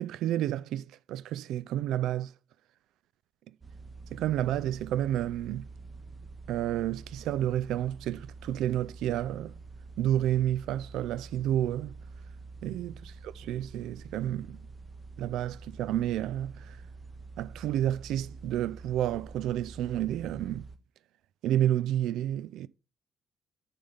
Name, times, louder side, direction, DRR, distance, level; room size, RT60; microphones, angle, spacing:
voice 1, 0.0-2.3 4.1-5.7 6.5-9.6 10.0-11.9 12.6-14.6 15.2-16.8 17.4-20.7 21.4-22.7, right 12 dB, 60° right, 0.3 m, -30 dB
sound 1, 3.6-20.8, right 3 dB, 30° right, 0.9 m, -47 dB
10.0 x 4.1 x 5.2 m
figure-of-eight pair, 45°, 0 cm